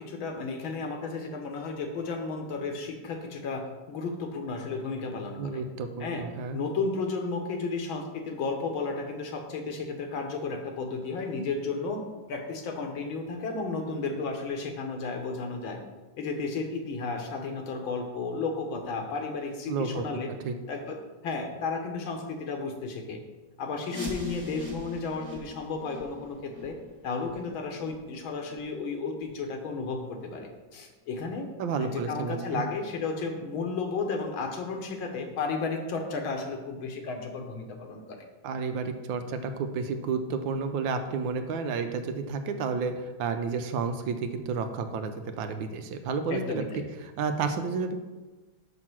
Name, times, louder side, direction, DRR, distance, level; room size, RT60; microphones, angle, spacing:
voice 1, 0.0-5.6 6.0-6.3 6.5-15.8 16.2-20.3 20.7-21.0 21.2-23.2 23.6-26.8 27.0-31.5 31.8-38.2 46.3-46.8, left 4 dB, 80° left, 4 dB, 1.8 m, -33 dB
voice 2, 5.4-6.6 19.7-20.5 31.6-32.6 38.4-46.6 47.2-48.0, right 5 dB, 75° right, 8 dB, 1.3 m, -31 dB
sound 1, 23.8-29.4 29.8-29.9 30.4-30.5 31.1-31.2 31.8-31.9, left 2 dB, 20° right, 1.7 m, -43 dB
6.0 x 5.5 x 6.1 m, 1.2 s
omnidirectional pair, 2.2 m